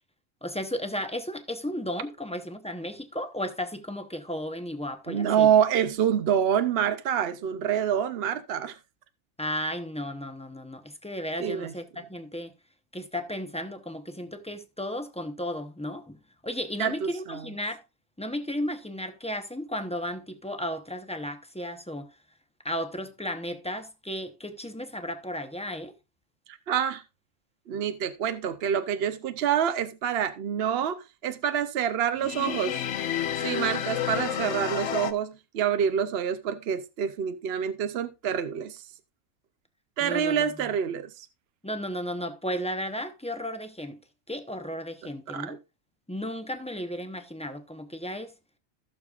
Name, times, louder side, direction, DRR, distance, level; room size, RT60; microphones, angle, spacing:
voice 1, 0.4-5.5 9.4-12.5 12.9-17.8 18.2-22.1 22.6-25.9 40.0-40.5 41.6-44.0 44.3-45.6 46.1-48.3, equal, 5° left, 0.6 m, -34 dB
voice 2, 5.1-8.8 11.4-11.7 16.8-17.4 26.5-27.0 27.7-32.8 33.4-38.8 40.0-41.3 45.3-45.6, right 8 dB, 60° right, 0.7 m, -27 dB
sound 1, 32.2-35.1, left 9 dB, 65° left, 0.9 m, -30 dB
15.5 x 6.6 x 2.4 m
omnidirectional pair, 1.4 m